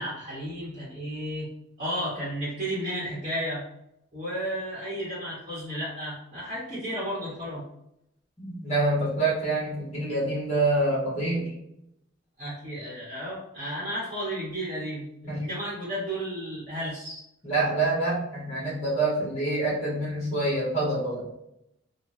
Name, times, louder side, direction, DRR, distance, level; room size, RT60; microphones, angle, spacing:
voice 1, 0.0-1.5 1.8-3.6 4.1-7.6 12.4-17.2, equal, 30° right, -10 dB, 1.1 m, -33 dB
voice 2, 8.4-11.5 15.3-15.4 17.4-21.2, right 2 dB, 30° left, -5 dB, 1.2 m, -26 dB
2.9 x 2.2 x 2.6 m, 0.80 s
head